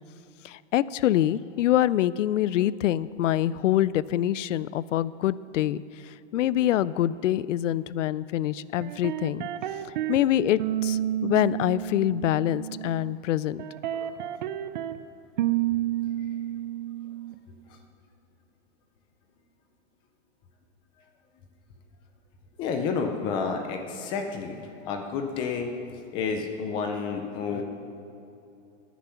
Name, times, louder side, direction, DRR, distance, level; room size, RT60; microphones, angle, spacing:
voice 1, 0.4-9.5 10.1-13.6, left 12 dB, 85° left, 19 dB, 0.5 m, -25 dB
sound 1, 8.8-10.2 10.6-13.1 13.6-15.0 15.4-17.4, right 12 dB, 40° right, 0.5 m, -30 dB
voice 2, 22.6-25.8 26.1-27.6, left 5 dB, 15° left, 5 dB, 0.4 m, -30 dB
16.0 x 10.5 x 5.7 m, 2.8 s
supercardioid pair, 165°, 36 cm